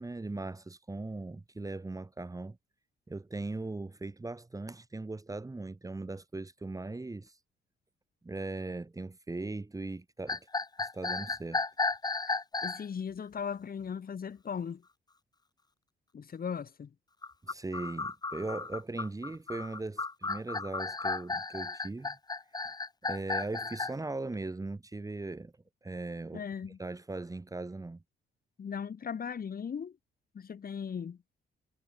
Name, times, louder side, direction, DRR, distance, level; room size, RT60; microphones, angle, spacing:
voice 1, 0.0-2.6 3.1-7.4 8.2-10.5 10.8-11.6 17.4-22.2 23.0-25.5 25.8-26.4 26.8-28.0, right 2 dB, 15° right, 2.0 m, -39 dB
sound 1, 10.3-12.9 17.2-23.9, left 3 dB, 20° left, 1.0 m, -34 dB
voice 2, 12.6-14.8 16.1-16.9 26.3-26.8 28.6-30.0 30.3-31.2, left 7 dB, 45° left, 5.0 m, -38 dB
cardioid pair, 90°, 20 cm